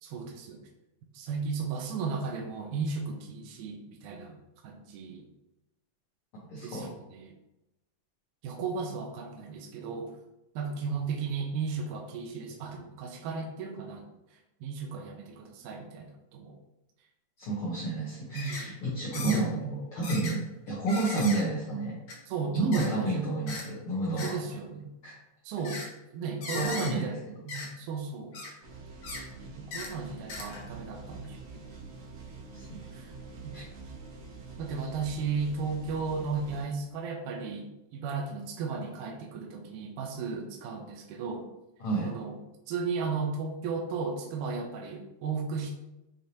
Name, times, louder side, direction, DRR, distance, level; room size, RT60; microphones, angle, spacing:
voice 1, 0.0-0.7 1.1-5.3 6.6-7.4 8.4-10.1 10.6-14.1 14.6-16.5 18.4-18.7 19.1-19.8 22.3-23.3 24.2-24.9 25.4-25.8 26.1-27.2 27.4-28.4 29.6-31.6 32.9-33.1 34.6-37.7 37.9-41.5 42.0-42.4 42.7-45.7, right 5 dB, 80° right, 1 dB, 2.0 m, -35 dB
voice 2, 6.5-6.9 17.4-20.4 20.7-22.0 22.5-24.3 25.0-25.1 26.5-27.2 32.5-32.8 33.5-33.6 41.8-42.1, right 2 dB, 90° left, -6 dB, 1.2 m, -30 dB
sound 1, 18.3-18.6 19.1-19.4 20.0-20.3 20.9-21.4 22.1-22.2 22.7-22.9 23.5-23.6 24.2-24.3 25.6-25.9 26.4-26.9 27.5-27.7 28.3-28.5 29.0-29.2 29.7-29.9 30.3-30.7 31.2-31.3, left 3 dB, 70° left, 1.4 m, -38 dB
sound 2, 28.6-36.6, right 3 dB, 60° right, 2.1 m, -46 dB
6.5 x 2.8 x 2.6 m, 0.94 s
omnidirectional pair, 3.7 m